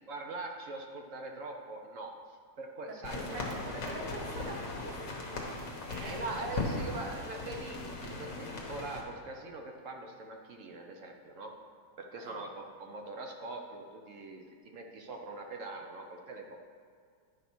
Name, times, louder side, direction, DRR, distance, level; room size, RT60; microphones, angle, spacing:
voice 1, 0.1-3.8 5.9-11.5 12.0-14.4 14.7-16.6, right 3 dB, 55° right, 2 dB, 1.0 m, -42 dB
voice 2, 2.9-5.7 6.1-6.5 12.2-12.4, right 2 dB, 75° right, 1 dB, 1.7 m, -46 dB
sound 1, 3.0-9.0, left 2 dB, 90° left, 1.9 m, -38 dB
10.0 x 4.1 x 6.0 m, 2.2 s
omnidirectional pair, 1.9 m